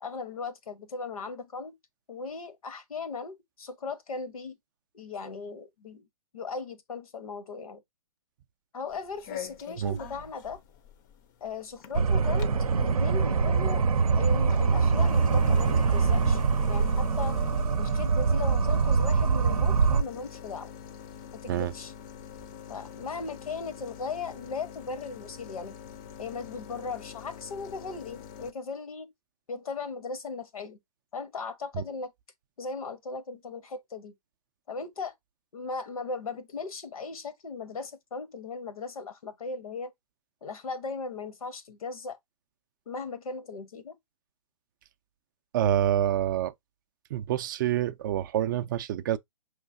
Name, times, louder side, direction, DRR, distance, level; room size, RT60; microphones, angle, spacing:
voice 1, 0.0-1.8 2.1-4.6 4.9-6.1 6.3-7.8 8.7-10.6 11.4-12.5 12.8-13.9 14.1-16.4 16.7-17.4 17.8-20.7 21.3-21.9 22.7-25.8 26.2-29.1 29.5-30.8 31.1-32.1 32.6-34.1 34.7-35.1 35.5-39.9 40.4-42.2 42.9-44.0, left 4 dB, 80° left, 1.0 m, -37 dB
sound 1, 8.9-28.5, left 8 dB, 35° left, 0.5 m, -44 dB
sound 2, 11.9-20.0, right 5 dB, 85° right, 0.6 m, -24 dB
voice 2, 45.5-46.5 47.1-49.2, right 11 dB, 35° right, 0.3 m, -27 dB
5.4 x 3.1 x 2.6 m
hypercardioid pair, 140°, 18 cm